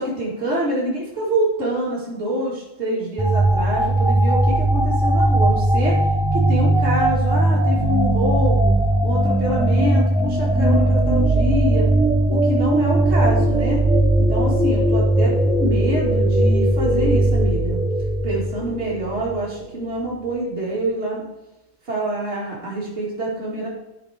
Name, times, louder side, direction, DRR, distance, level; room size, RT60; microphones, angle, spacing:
voice 1, 0.0-6.0 6.3-8.7 9.0-11.9 12.3-13.8 14.2-17.8 18.2-21.3 21.9-23.7, right 1 dB, 60° right, -7 dB, 2.6 m, -26 dB
sound 1, 3.2-19.5, right 1 dB, 5° right, 0.5 m, -18 dB
12.5 x 4.7 x 5.0 m, 0.97 s
omnidirectional pair, 1.3 m